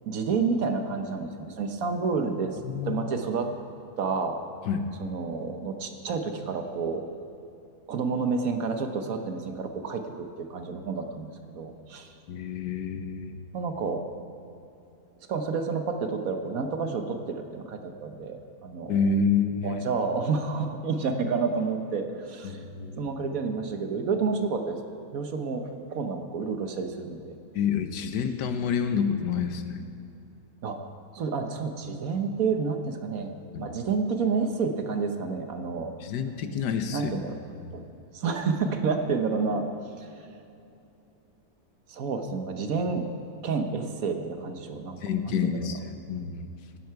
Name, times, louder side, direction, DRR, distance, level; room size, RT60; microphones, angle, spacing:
voice 1, 0.1-2.5 2.8-3.5 4.0-4.4 5.0-7.0 7.9-12.1 13.5-14.0 15.3-19.1 19.6-22.6 23.0-24.8 25.1-27.4 30.6-30.8 31.1-35.9 36.9-37.4 37.7-37.8 38.1-39.7 40.0-40.1 41.9-43.1 43.4-44.9 45.2-45.8, right 4 dB, 60° right, 6 dB, 1.3 m, -29 dB
voice 2, 2.6-3.1 4.7-4.9 12.3-13.4 18.9-19.8 22.4-23.0 27.5-29.8 33.5-33.6 36.0-37.1 37.6-37.7 45.0-45.8 46.1-46.5, left 6 dB, 90° left, 8 dB, 1.5 m, -28 dB
17.0 x 10.5 x 4.7 m, 2.7 s
omnidirectional pair, 1.7 m